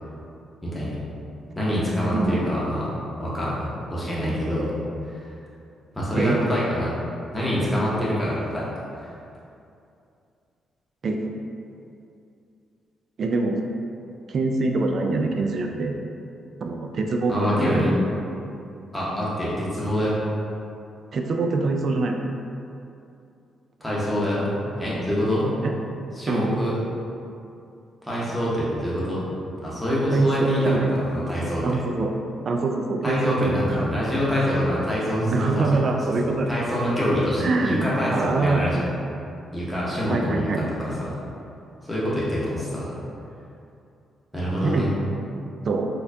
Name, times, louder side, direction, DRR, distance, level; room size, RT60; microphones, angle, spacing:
voice 1, 0.6-1.0 1.5-2.9 3.2-4.7 5.9-6.9 7.3-8.7 17.3-17.9 18.9-20.2 23.8-25.5 26.1-26.8 28.0-29.2 29.6-31.8 33.0-35.8 36.2-38.9 39.5-41.1 41.8-42.9 44.3-44.9, equal, 5° left, -8 dB, 0.9 m, -25 dB
voice 2, 13.2-13.6 14.3-16.0 16.6-17.9 21.1-22.2 25.6-25.7 26.3-26.5 30.1-30.9 31.6-32.1 32.4-33.5 33.8-33.9 35.3-36.5 37.4-38.6 40.1-40.7 44.6-44.9 45.7-45.9, right 3 dB, 45° right, 3 dB, 0.3 m, -24 dB
4.3 x 2.3 x 2.7 m, 2.6 s
cardioid pair, 120°, 0 cm